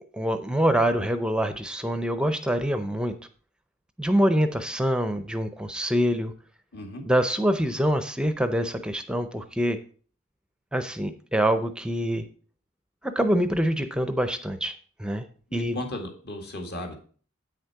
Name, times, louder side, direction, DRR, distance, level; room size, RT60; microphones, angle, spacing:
voice 1, 0.1-3.1 4.0-6.3 7.1-9.8 10.7-12.3 13.0-14.7 15.0-15.3 15.5-15.7, equal, 5° right, 9 dB, 0.5 m, -25 dB
voice 2, 6.7-7.0 15.5-17.0, left 1 dB, 55° left, 3 dB, 1.9 m, -35 dB
8.8 x 6.5 x 4.7 m, 0.42 s
head